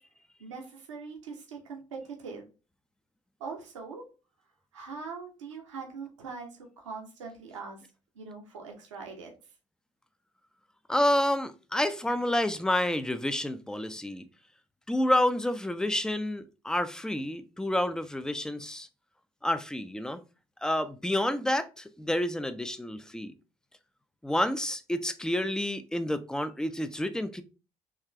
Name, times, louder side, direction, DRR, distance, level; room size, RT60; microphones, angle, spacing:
voice 1, 0.4-2.5 3.4-4.0 4.7-7.8 8.1-9.3, right 5 dB, 75° right, 1.0 m, -42 dB
voice 2, 10.9-14.3 14.9-18.9 19.4-20.2 20.6-23.3 24.2-27.4, left 1 dB, 5° left, 0.5 m, -29 dB
4.9 x 3.2 x 3.2 m
figure-of-eight pair, 50°, 16 cm